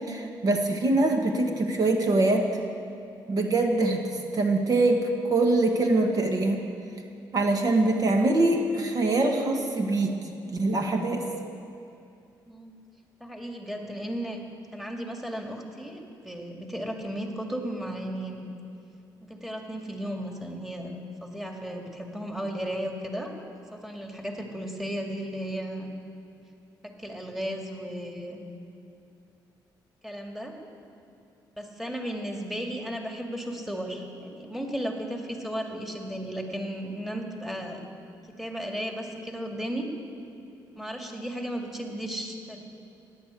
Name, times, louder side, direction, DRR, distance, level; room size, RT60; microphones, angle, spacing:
voice 1, 0.0-2.5 3.3-4.0 4.3-6.7 7.3-10.2 10.5-11.3, right 2 dB, 50° right, 3 dB, 1.6 m, -23 dB
voice 2, 13.2-14.4 14.7-18.5 19.2-21.0 21.2-23.3 23.7-25.9 26.8-28.4 30.0-30.5 31.6-37.8 38.4-39.9 40.7-42.7, equal, 5° right, 1 dB, 2.3 m, -35 dB
16.5 x 10.5 x 8.3 m, 2.6 s
cardioid pair, 95°, 8 cm